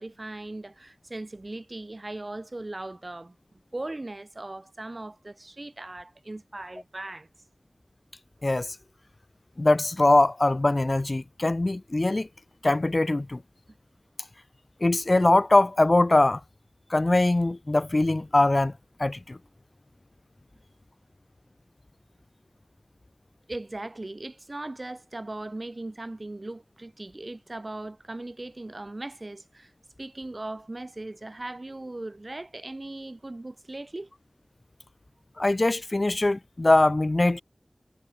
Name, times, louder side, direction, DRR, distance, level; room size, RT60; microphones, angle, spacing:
voice 1, 0.0-7.3 23.5-29.7 30.0-34.1, right 2 dB, 40° right, 6.3 m, -38 dB
voice 2, 8.4-8.8 9.6-12.3 12.6-13.4 14.8-16.4 16.9-18.7 19.0-19.4 35.4-37.4, left 2 dB, 40° left, 2.3 m, -22 dB
wide cardioid pair, 70°, 0 cm